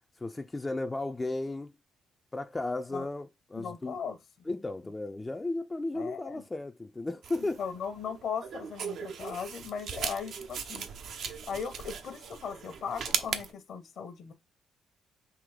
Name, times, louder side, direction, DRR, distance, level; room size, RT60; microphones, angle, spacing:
voice 1, 0.2-1.7 2.3-3.9 4.5-7.6, left 2 dB, 20° left, 0.4 m, -34 dB
voice 2, 3.5-4.2 5.9-6.4 7.4-10.9 11.5-14.3, left 6 dB, 65° left, 0.9 m, -38 dB
sound 1, 7.2-13.5, right 6 dB, 65° right, 0.6 m, -38 dB
3.8 x 2.8 x 4.8 m
cardioid pair, 90°, 0 cm